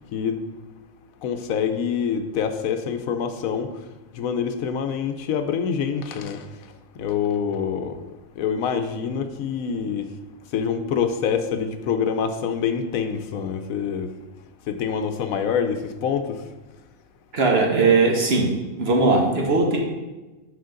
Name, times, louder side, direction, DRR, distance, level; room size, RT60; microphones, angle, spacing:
voice 1, 1.2-3.7 4.1-6.5 7.0-8.0 8.4-10.1 10.5-14.1 14.7-16.4, left 7 dB, 80° left, 8 dB, 1.1 m, -26 dB
voice 2, 17.3-18.5 18.8-19.8, right 3 dB, 50° right, 1 dB, 1.3 m, -19 dB
7.9 x 5.0 x 3.8 m, 1.1 s
omnidirectional pair, 1.4 m